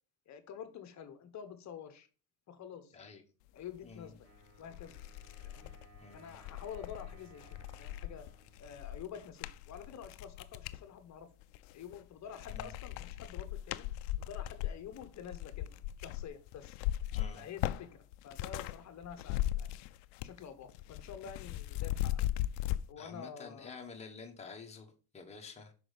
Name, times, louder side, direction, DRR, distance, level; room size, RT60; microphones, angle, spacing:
voice 1, 0.3-2.1 2.5-3.0 3.5-4.1 4.6-5.0 5.4-5.7 6.1-8.3 8.6-11.3 11.7-13.9 14.2-15.7 16.0-16.8 17.3-17.9 18.2-19.7 20.2-22.2 22.9-23.9, left 8 dB, 35° left, 10 dB, 1.1 m, -48 dB
voice 2, 3.8-4.1 6.0-6.3 12.5-12.8 17.1-17.5 23.0-25.7, left 4 dB, 15° left, 1 dB, 1.4 m, -49 dB
sound 1, 4.2-4.3 4.7-10.8 11.4-12.0 12.3-18.8 19.0-20.4 20.7-22.8, left 14 dB, 75° left, 0.6 m, -38 dB
Wind instrument woodwind instrument, 4.2-9.9, right 3 dB, 30° right, 4.3 m, -62 dB
6.0 x 5.1 x 5.2 m, 0.37 s
supercardioid pair, 125°, 45 cm